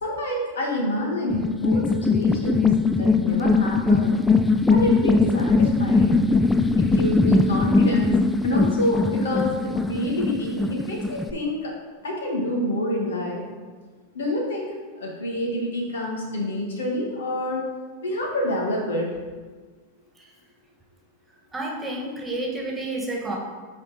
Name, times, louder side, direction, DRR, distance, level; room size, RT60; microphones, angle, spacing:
voice 1, 0.0-2.7 3.0-4.2 4.7-6.3 6.8-8.2 8.4-9.5 9.9-11.7 12.0-13.4 14.1-17.6 18.0-19.1, left 1 dB, 75° left, -1 dB, 1.8 m, -27 dB
sound 1, 1.3-11.3, left 3 dB, 10° left, 0.4 m, -20 dB
voice 2, 21.5-23.4, right 2 dB, 15° right, -1 dB, 1.8 m, -30 dB
8.4 x 4.4 x 4.2 m, 1.4 s
hypercardioid pair, 95°, 0 cm